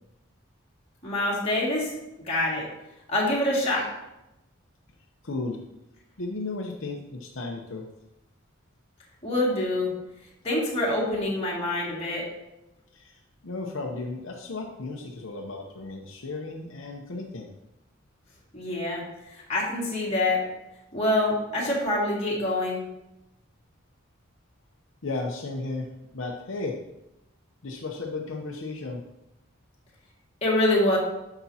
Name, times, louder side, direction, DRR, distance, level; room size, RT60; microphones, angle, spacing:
voice 1, 1.0-1.9 2.2-2.6 3.1-3.9 9.2-9.9 10.4-12.3 18.5-20.4 20.9-22.8 30.4-31.0, left 1 dB, 30° left, -5 dB, 2.1 m, -25 dB
voice 2, 5.2-5.6 6.2-7.9 12.9-17.5 25.0-26.8 27.6-29.0, left 3 dB, 70° left, 0 dB, 0.8 m, -34 dB
9.7 x 5.9 x 2.8 m, 0.93 s
head